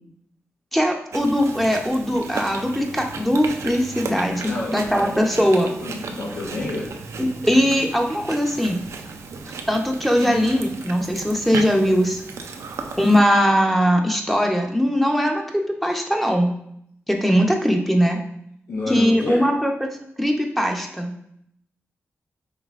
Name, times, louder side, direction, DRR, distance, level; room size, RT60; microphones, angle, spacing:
voice 1, 0.7-5.7 7.2-8.8 9.7-12.2 13.0-16.5 17.1-18.2 18.9-19.9 20.2-21.1, equal, 5° left, 2 dB, 0.7 m, -20 dB
Chewing mastication, 1.1-13.2, right 4 dB, 85° right, 0.4 m, -35 dB
voice 2, 4.5-5.0 5.8-6.9 10.2-10.4 18.7-19.4, left 2 dB, 90° left, -6 dB, 0.8 m, -29 dB
5.3 x 3.2 x 2.5 m, 0.71 s
cardioid pair, 60°, 5 cm